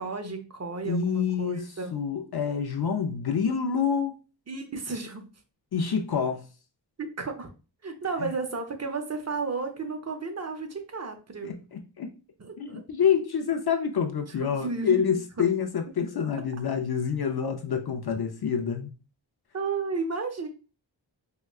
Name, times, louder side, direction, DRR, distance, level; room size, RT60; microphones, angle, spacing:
voice 1, 0.0-1.9 4.5-5.3 7.0-7.5 7.8-11.5 12.4-12.8 14.4-15.2 19.5-20.5, right 4 dB, 35° right, 0.7 m, -33 dB
voice 2, 0.8-4.2 5.7-6.5 8.2-8.3 11.4-12.2 12.6-18.9, left 7 dB, 55° left, 0.5 m, -27 dB
4.6 x 2.2 x 2.3 m
wide cardioid pair, 55°, 45 cm